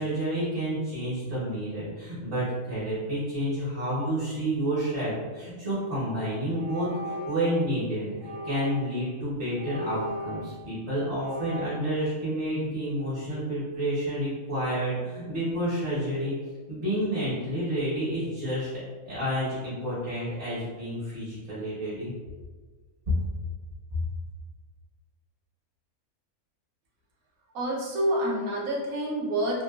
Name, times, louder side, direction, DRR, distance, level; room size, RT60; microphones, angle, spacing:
voice 1, 0.0-16.3 16.7-22.1 23.9-24.0, right 1 dB, 50° right, -10 dB, 1.4 m, -30 dB
sound 1, 5.7-5.9 6.5-7.6 8.2-9.0 9.5-10.8 11.2-11.8, right 1 dB, 10° right, 0.4 m, -37 dB
voice 2, 27.5-29.6, right 1 dB, 70° right, -3 dB, 1.1 m, -27 dB
3.6 x 2.6 x 2.3 m, 1.4 s
omnidirectional pair, 1.6 m